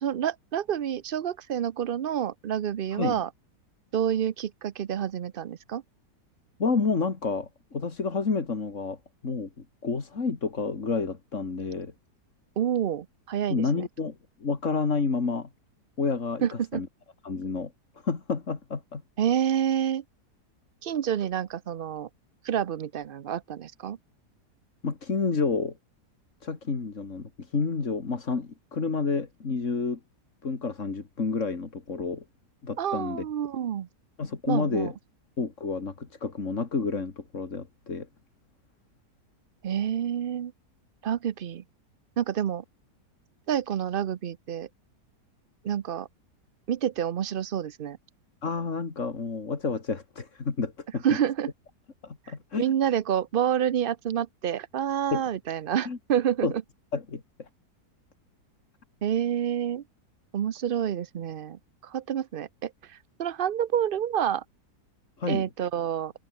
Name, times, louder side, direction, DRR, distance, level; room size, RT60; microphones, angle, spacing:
voice 1, 0.0-3.3 3.9-5.8 12.6-13.8 16.4-16.8 19.2-20.0 20.8-22.1 22.4-24.0 32.8-33.9 34.5-34.9 39.6-40.5 41.0-41.6 42.2-42.6 43.5-44.7 45.6-46.1 46.7-48.0 51.0-51.5 52.3-56.5 59.0-59.8 60.3-64.4 65.3-66.1, right 9 dB, 70° right, 0.5 m, -28 dB
voice 2, 6.6-9.0 9.2-9.5 9.8-11.9 13.5-14.2 14.4-15.5 16.0-16.9 17.2-17.7 18.0-19.0 24.8-25.7 26.4-30.0 30.4-32.2 32.6-33.2 34.2-34.9 35.4-38.1 48.4-51.2 52.0-52.7 55.1-55.2 55.9-56.0 56.4-56.5 56.9-57.5 65.2-65.5, left 4 dB, 50° left, 2.6 m, -29 dB
omnidirectional pair, 1.8 m